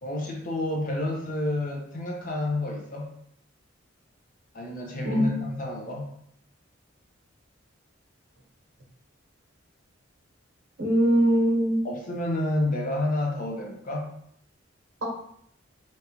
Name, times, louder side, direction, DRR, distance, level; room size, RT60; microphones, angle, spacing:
voice 1, 0.0-3.1 4.5-6.1 11.8-14.1, left 1 dB, 45° left, 0 dB, 0.6 m, -29 dB
voice 2, 10.8-11.9 15.0-15.1, equal, 75° right, -2 dB, 0.9 m, -22 dB
3.1 x 2.3 x 2.8 m, 0.70 s
head